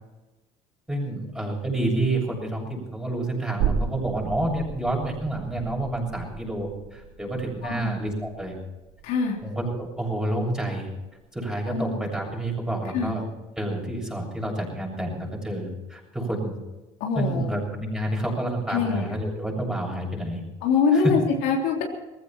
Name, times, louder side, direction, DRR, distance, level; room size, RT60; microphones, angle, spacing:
voice 1, 0.9-8.6 9.4-10.9 11.3-13.2 13.6-16.6 17.2-20.4 20.9-21.1, right 1 dB, 5° right, -1 dB, 7.5 m, -29 dB
sound 1, 3.6-10.9 11.2-11.3, right 7 dB, 80° right, 2.1 m, -34 dB
voice 2, 9.0-9.4 11.7-11.9 12.9-13.1 17.0-17.5 18.7-19.1 20.6-21.8, left 5 dB, 80° left, 0 dB, 3.4 m, -24 dB
20.0 x 15.5 x 4.5 m, 1.1 s
supercardioid pair, 95°, 15 cm